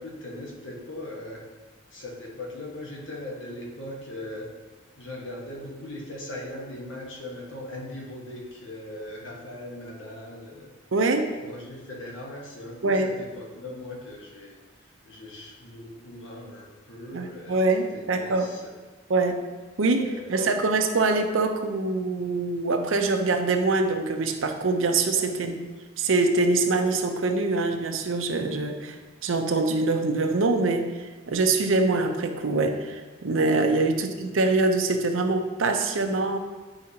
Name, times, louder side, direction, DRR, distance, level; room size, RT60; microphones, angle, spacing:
voice 1, 0.0-1.5 1.9-4.5 5.0-10.7 11.4-17.6 17.9-18.7 20.0-20.5 25.1-25.6 33.7-33.9, left 1 dB, 75° left, -2 dB, 1.3 m, -39 dB
voice 2, 10.9-11.3 12.8-13.1 17.1-18.5 19.1-19.4 19.8-25.6 26.0-28.9 29.2-30.9 31.3-36.4, right 3 dB, 85° right, 5 dB, 0.7 m, -24 dB
9.0 x 4.8 x 2.8 m, 1.3 s
head